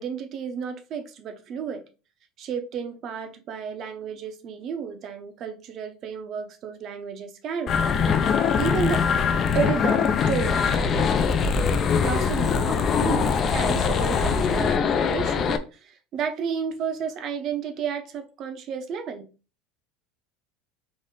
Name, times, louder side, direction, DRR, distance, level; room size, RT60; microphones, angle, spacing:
voice 1, 0.0-1.8 2.4-7.7 8.6-9.0 9.5-11.1 12.0-19.3, right 6 dB, 35° right, 0.7 m, -32 dB
sound 1, 7.7-15.6, left 6 dB, 25° left, 0.4 m, -22 dB
4.0 x 3.1 x 3.8 m
cardioid pair, 165°, 0 cm